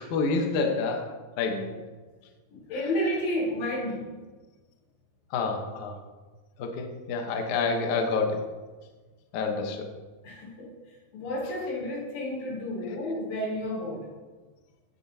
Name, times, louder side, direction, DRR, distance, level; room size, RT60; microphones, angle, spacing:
voice 1, 0.0-1.6 5.3-6.0 6.6-8.4 9.3-9.8, left 4 dB, 70° left, 3 dB, 1.9 m, -28 dB
voice 2, 1.5-1.8 2.5-4.1 9.6-9.7 10.2-14.1, left 1 dB, 90° left, -5 dB, 5.7 m, -32 dB
16.5 x 7.3 x 2.8 m, 1.3 s
omnidirectional pair, 4.8 m